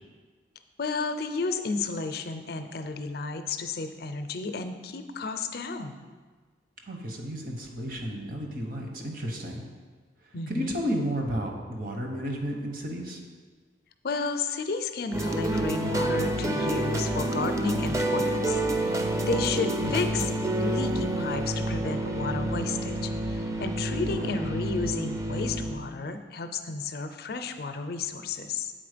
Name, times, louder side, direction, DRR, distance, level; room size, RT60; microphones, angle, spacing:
voice 1, 0.8-6.0 10.3-10.8 14.0-20.3 20.6-28.7, left 4 dB, 60° left, 8 dB, 0.5 m, -32 dB
voice 2, 6.9-9.7 10.5-13.2 19.8-20.0 24.2-24.4, equal, 50° right, 2 dB, 1.0 m, -32 dB
sound 1, 15.1-25.8, right 1 dB, 15° right, 0.4 m, -28 dB
7.8 x 4.1 x 5.0 m, 1.4 s
head